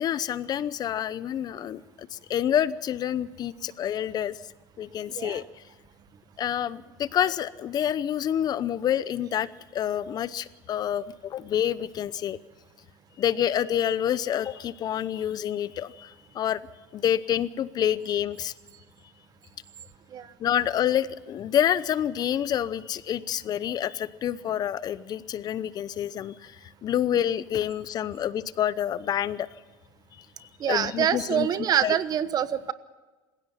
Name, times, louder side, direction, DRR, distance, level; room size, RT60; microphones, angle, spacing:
voice 1, 0.0-4.4 4.8-5.4 6.4-12.4 13.2-16.6 16.9-18.5 20.4-26.6 26.8-29.5 30.7-31.5 31.8-32.0, left 10 dB, 45° left, 17 dB, 0.8 m, -28 dB
voice 2, 30.6-32.7, right 9 dB, 40° right, 13 dB, 1.2 m, -25 dB
27.5 x 16.5 x 5.8 m, 1.2 s
supercardioid pair, 110°, 10 cm